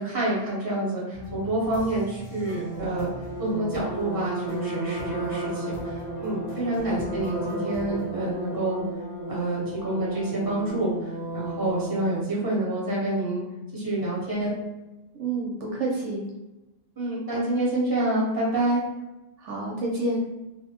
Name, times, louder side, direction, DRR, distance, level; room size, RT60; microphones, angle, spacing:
voice 1, 0.0-3.1 3.4-8.8 9.3-13.4 13.7-14.5 17.0-18.8, right 1 dB, 20° right, -6 dB, 0.8 m, -27 dB
sound 1, 1.1-8.1, right 1 dB, 80° left, 1.1 m, -42 dB
sound 2, 2.5-12.2, right 2 dB, 40° left, 0.7 m, -34 dB
voice 2, 6.7-7.2 15.2-16.2 19.4-20.2, right 2 dB, 70° right, -2 dB, 0.8 m, -29 dB
2.8 x 2.0 x 2.8 m, 1.0 s
omnidirectional pair, 1.3 m